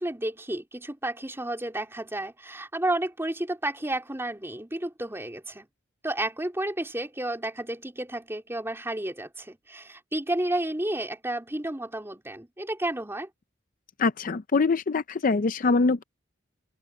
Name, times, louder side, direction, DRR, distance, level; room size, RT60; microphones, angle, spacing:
voice 1, 0.0-5.7 6.0-13.3, right 1 dB, 15° right, 3.3 m, -31 dB
voice 2, 14.0-16.0, left 4 dB, 45° left, 0.5 m, -24 dB
open air
head